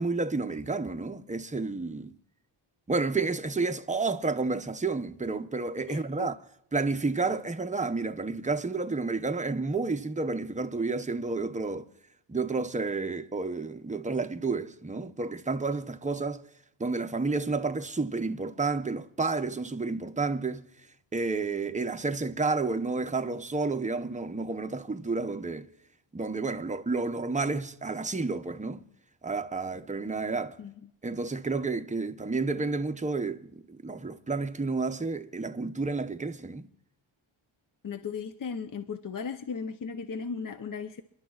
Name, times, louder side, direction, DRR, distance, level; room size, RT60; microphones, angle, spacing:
voice 1, 0.0-2.1 2.9-6.4 6.7-11.9 12.3-16.4 16.8-20.7 21.1-25.7 26.1-28.9 29.2-30.6 31.0-36.7, right 3 dB, 15° right, 0.7 m, -30 dB
voice 2, 5.9-6.3 30.6-30.7 37.8-41.0, left 5 dB, 40° left, 0.7 m, -36 dB
29.5 x 11.5 x 2.4 m
wide cardioid pair, 95°, 49 cm